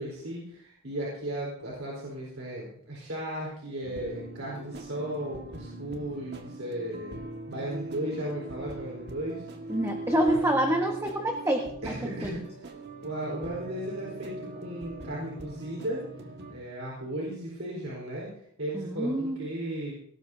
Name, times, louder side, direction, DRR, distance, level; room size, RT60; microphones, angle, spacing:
voice 1, 0.0-9.4 10.1-10.4 11.8-12.4 13.0-16.1 16.5-18.3 18.6-19.9, right 1 dB, 70° right, -4 dB, 4.3 m, -35 dB
Melancholic Music, 3.8-16.5, right 2 dB, 50° right, 1.8 m, -42 dB
voice 2, 9.7-11.9 12.2-12.3 18.7-19.4, right 1 dB, 15° right, 3 dB, 1.2 m, -27 dB
19.0 x 17.5 x 2.8 m, 0.70 s
head